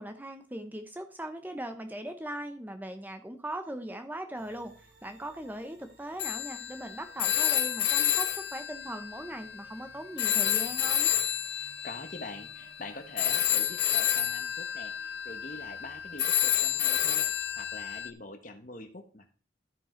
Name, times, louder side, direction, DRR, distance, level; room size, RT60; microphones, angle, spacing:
voice 1, 0.0-4.7 5.0-11.1, right 1 dB, 10° right, 7 dB, 0.8 m, -39 dB
sound 1, 4.3-18.0, right 2 dB, 70° right, 4.6 m, -59 dB
Telephone, 6.2-9.8 10.2-18.1, left 10 dB, 60° left, 0.7 m, -29 dB
voice 2, 11.6-19.3, left 2 dB, 45° left, 7 dB, 1.2 m, -44 dB
13.0 x 5.4 x 4.5 m, 0.38 s
head